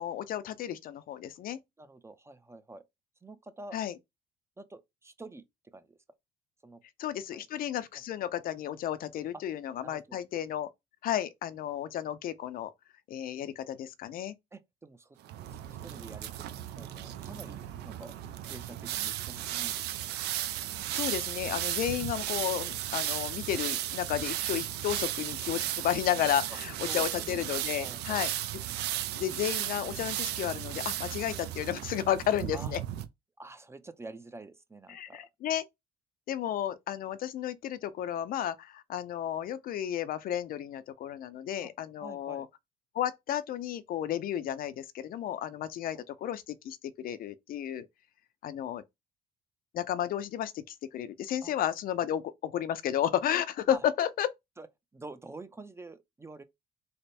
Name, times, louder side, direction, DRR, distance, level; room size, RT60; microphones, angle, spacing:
voice 1, 0.0-1.6 3.7-3.9 7.0-10.7 11.0-12.7 13.1-14.3 20.9-28.3 29.2-32.8 34.9-35.6 36.3-42.5 42.9-47.9 48.4-48.8 49.7-54.3, left 10 dB, 60° left, 0.5 m, -32 dB
voice 2, 1.8-2.8 3.2-3.8 4.6-5.4 5.7-6.0 6.6-6.8 7.3-7.5 7.9-8.0 9.3-9.4 9.8-10.2 14.5-15.2 15.5-16.3 16.8-18.1 18.5-20.2 26.9-27.5 27.7-28.3 32.5-32.7 33.4-35.3 41.6-41.7 42.0-42.5 45.9-46.0 51.4-51.5 53.7-53.8 54.6-54.7 54.9-56.4, right 2 dB, 15° right, 0.5 m, -47 dB
sound 1, 15.2-33.0, right 13 dB, 80° right, 0.5 m, -35 dB
3.3 x 2.1 x 4.1 m
cardioid pair, 110°, 17 cm